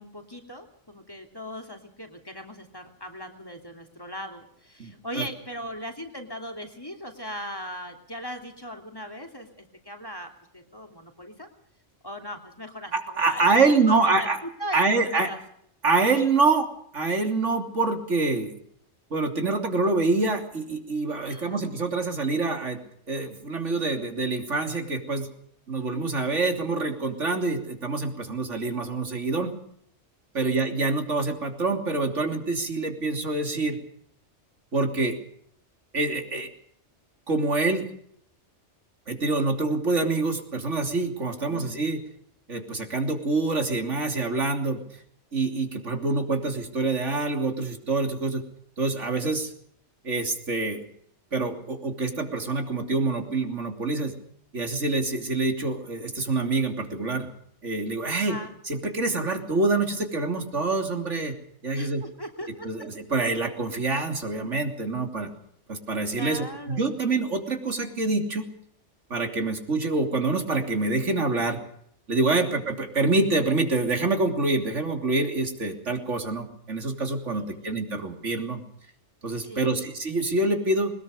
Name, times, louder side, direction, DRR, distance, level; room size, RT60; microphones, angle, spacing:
voice 1, 0.0-11.5 12.0-14.3 14.6-15.4 21.2-21.6 26.2-26.7 30.4-30.6 41.5-41.8 58.1-58.5 61.7-62.7 66.1-66.8 72.3-72.4 77.3-77.9 79.4-79.8, equal, 20° left, 4 dB, 3.1 m, -39 dB
voice 2, 4.8-5.2 12.9-14.4 14.7-15.3 15.8-16.7 16.9-18.5 19.1-22.8 23.1-25.3 25.7-29.5 30.3-33.8 34.7-35.2 35.9-36.5 37.3-37.8 39.1-42.0 42.5-44.8 45.3-48.4 48.8-49.5 50.0-50.8 51.3-54.2 54.5-57.3 57.6-58.4 58.6-61.4 61.6-62.0 62.6-65.3 65.7-68.5 69.1-71.6 72.1-78.6 79.2-80.9, right 3 dB, 85° right, 4 dB, 3.5 m, -26 dB
22.0 x 20.0 x 6.7 m, 0.67 s
omnidirectional pair, 1.2 m